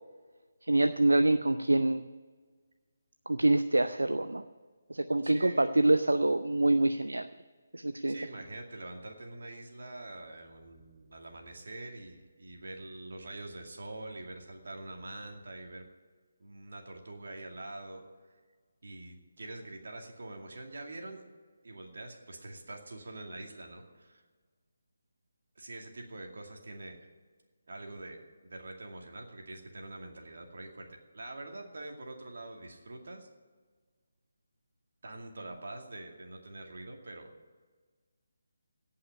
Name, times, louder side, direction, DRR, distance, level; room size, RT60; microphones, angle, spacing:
voice 1, 0.7-2.0 3.3-4.4 4.9-7.3 7.7-8.1, right 2 dB, 75° right, 10 dB, 0.6 m, -26 dB
voice 2, 5.2-5.8 8.1-15.8 16.4-18.0 18.8-21.2 21.6-24.2 25.6-27.1 27.7-30.9 31.1-33.3 35.0-37.3, right 2 dB, 55° right, 2 dB, 2.3 m, -45 dB
17.0 x 5.8 x 9.8 m, 1.5 s
figure-of-eight pair, 150°, 0 cm